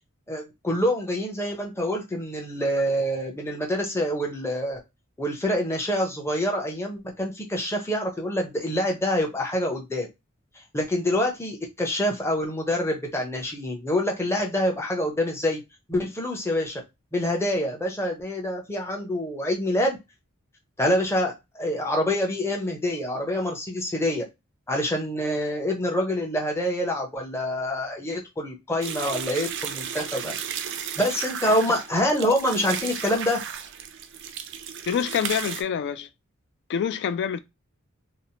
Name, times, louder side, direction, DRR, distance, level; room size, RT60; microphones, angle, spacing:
voice 1, 0.3-4.8 5.2-10.1 10.7-15.6 15.9-16.8 17.1-20.0 20.8-24.2 24.7-30.6 31.0-33.4, left 1 dB, 10° left, 0.7 m, -26 dB
sound 1, 28.8-35.6, right 8 dB, 60° right, 0.4 m, -34 dB
voice 2, 34.9-36.1 36.7-37.4, left 8 dB, 55° left, 0.3 m, -26 dB
2.8 x 2.0 x 2.8 m
head